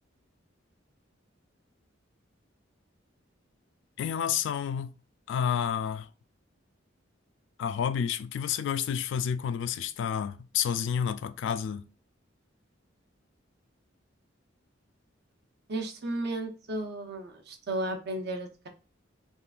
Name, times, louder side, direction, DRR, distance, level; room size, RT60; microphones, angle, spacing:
voice 1, 4.0-5.0 5.3-6.1 7.6-11.9, left 8 dB, 65° left, 0.3 m, -30 dB
voice 2, 15.7-18.7, right 1 dB, 60° right, 0.7 m, -34 dB
3.6 x 2.5 x 2.4 m
head